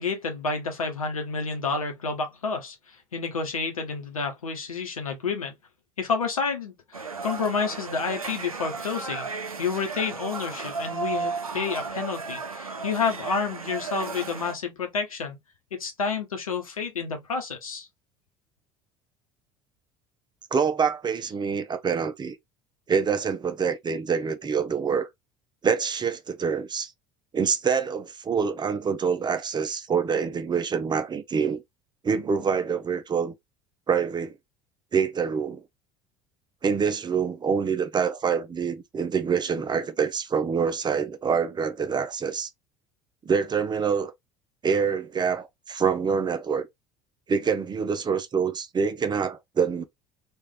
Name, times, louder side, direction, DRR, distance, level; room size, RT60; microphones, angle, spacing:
voice 1, 0.0-5.6 6.0-9.3 9.6-15.4 15.8-17.9, left 5 dB, 80° left, 0.9 m, -29 dB
sound 1, 6.9-14.5, right 4 dB, 90° right, 0.5 m, -34 dB
voice 2, 20.5-22.4 22.9-25.1 25.6-26.9 27.3-31.6 32.0-33.3 33.9-34.4 34.9-35.6 36.6-42.5 43.2-44.1 44.6-46.7 47.3-49.8, right 6 dB, 25° right, 0.6 m, -26 dB
3.2 x 2.5 x 3.6 m
figure-of-eight pair, 65°, 18 cm